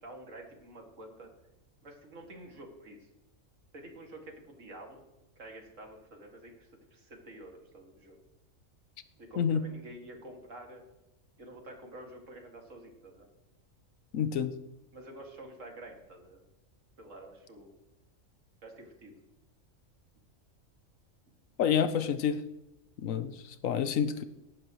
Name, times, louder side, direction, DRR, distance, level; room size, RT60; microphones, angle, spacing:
voice 1, 0.0-1.3 1.8-3.1 3.7-5.0 5.4-8.2 9.2-10.8 11.4-13.3 14.9-16.4 17.0-17.7 18.6-19.2, right 1 dB, 70° right, 2 dB, 2.4 m, -49 dB
voice 2, 14.1-14.5 21.6-22.4 23.0-24.2, left 8 dB, 75° left, 11 dB, 1.1 m, -28 dB
17.5 x 10.0 x 3.0 m, 0.97 s
omnidirectional pair, 1.4 m